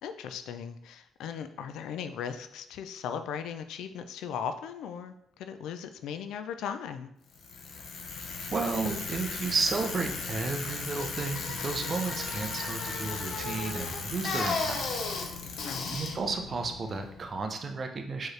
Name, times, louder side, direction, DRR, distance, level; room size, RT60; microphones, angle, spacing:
voice 1, 0.0-7.1 15.6-16.0, left 7 dB, 85° left, 9 dB, 0.3 m, -38 dB
Bicycle, 7.3-17.4, left 4 dB, 65° left, 0.7 m, -35 dB
voice 2, 8.5-14.9 15.9-18.3, right 4 dB, 40° right, 5 dB, 0.6 m, -32 dB
4.5 x 3.1 x 3.2 m, 0.76 s
cardioid pair, 90°, 0 cm